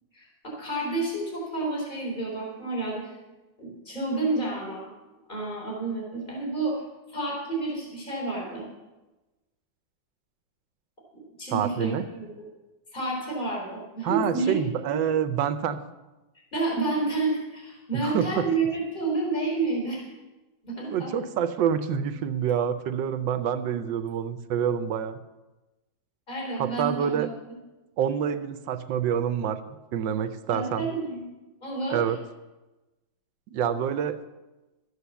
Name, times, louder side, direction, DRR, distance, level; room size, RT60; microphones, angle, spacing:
voice 1, 0.1-3.1 3.6-4.9 5.3-6.8 7.1-8.6 11.1-11.9 12.4-12.5 12.9-14.6 14.8-15.0 16.5-20.1 20.6-21.1 26.3-27.3 30.5-31.2 31.6-32.1, right 3 dB, 25° left, -3 dB, 3.9 m, -30 dB
voice 2, 11.5-12.1 14.0-15.8 18.0-18.4 20.9-25.2 26.6-27.3 28.0-29.6 29.9-30.9 31.9-32.2 33.5-34.2, right 8 dB, 80° right, 11 dB, 1.4 m, -27 dB
13.0 x 8.3 x 7.0 m, 1.1 s
omnidirectional pair, 2.0 m